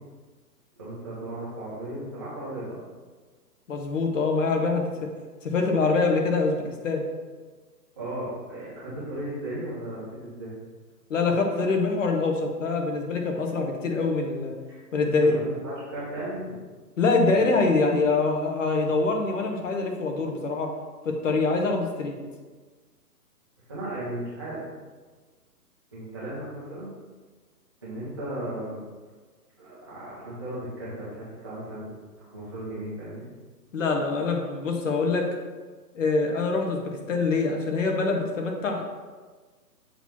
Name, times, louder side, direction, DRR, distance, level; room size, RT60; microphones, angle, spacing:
voice 1, 0.8-2.8 8.0-10.5 14.7-14.9 15.3-16.6 17.3-17.6 23.7-24.6 25.9-26.9 27.8-28.8 29.6-33.3, right 1 dB, 15° right, -11 dB, 0.6 m, -36 dB
voice 2, 3.7-5.1 5.4-7.0 11.1-14.5 14.9-15.4 17.0-20.7 21.0-22.2 33.7-35.3 35.9-38.8, left 3 dB, 50° left, 2 dB, 1.2 m, -24 dB
7.0 x 3.0 x 5.7 m, 1.4 s
hypercardioid pair, 165°, 49 cm